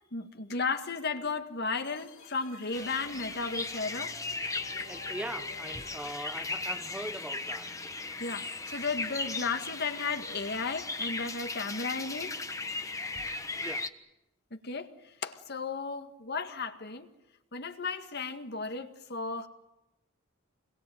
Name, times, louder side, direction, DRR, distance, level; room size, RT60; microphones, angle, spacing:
voice 1, 0.1-4.2 8.2-12.3 14.5-14.9 15.2-17.1 17.5-19.5, left 4 dB, 55° left, 1.9 m, -34 dB
sound 1, 1.8-7.8, left 3 dB, 75° left, 3.9 m, -54 dB
sound 2, 2.7-13.9, left 3 dB, 15° left, 1.3 m, -37 dB
voice 2, 4.9-7.7 13.1-13.2 13.6-13.9, right 1 dB, 5° right, 0.9 m, -41 dB
27.5 x 22.0 x 9.2 m
head